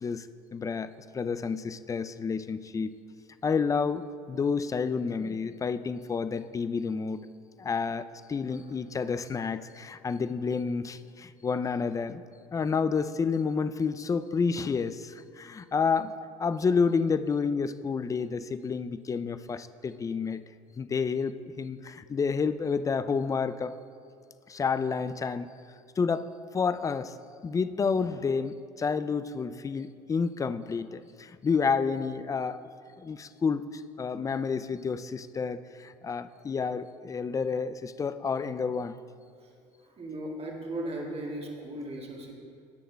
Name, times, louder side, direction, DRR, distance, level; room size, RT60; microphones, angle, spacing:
voice 1, 0.5-2.9 3.4-7.2 7.6-12.2 12.5-20.4 20.8-23.8 24.5-25.5 26.0-27.1 27.4-32.6 33.0-39.0, left 5 dB, 20° left, 13 dB, 0.3 m, -30 dB
voice 2, 40.0-42.3, right 1 dB, 35° right, -1 dB, 1.7 m, -36 dB
16.5 x 6.4 x 2.2 m, 2.3 s
hypercardioid pair, 70°, 19 cm